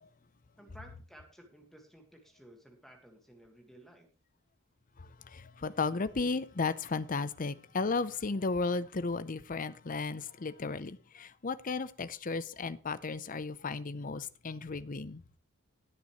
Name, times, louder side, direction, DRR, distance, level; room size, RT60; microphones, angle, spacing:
voice 1, 0.6-4.1, right 1 dB, ahead, 1.7 m, -55 dB
voice 2, 5.0-15.2, left 4 dB, 40° left, 0.6 m, -34 dB
19.5 x 6.8 x 3.1 m
head